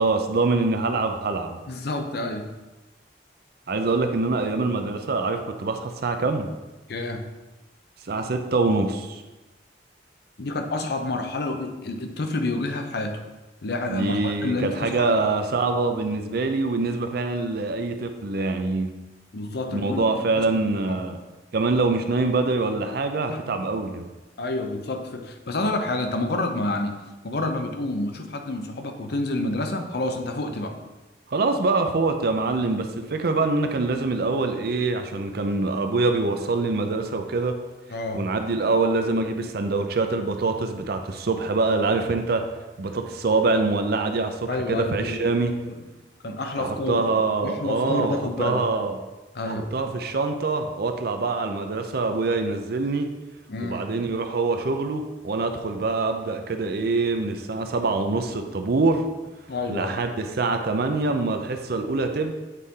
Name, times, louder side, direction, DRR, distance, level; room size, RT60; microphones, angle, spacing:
voice 1, 0.0-1.6 3.7-6.5 8.1-9.2 13.8-18.9 19.7-21.2 21.5-24.1 31.3-37.6 38.1-42.4 42.8-45.5 46.6-49.0 49.4-53.1 53.6-59.0 59.7-62.3, right 3 dB, 60° right, 6 dB, 0.6 m, -24 dB
voice 2, 1.7-2.5 6.9-7.2 10.4-13.2 13.6-15.2 19.3-20.0 20.3-20.6 20.9-21.0 23.3-23.6 24.4-26.9 27.2-30.8 37.9-38.2 44.5-45.8 46.2-48.6 49.3-49.7 53.5-53.8 59.5-60.0, left 2 dB, 65° left, 5 dB, 0.7 m, -29 dB
8.2 x 4.1 x 3.7 m, 1.1 s
head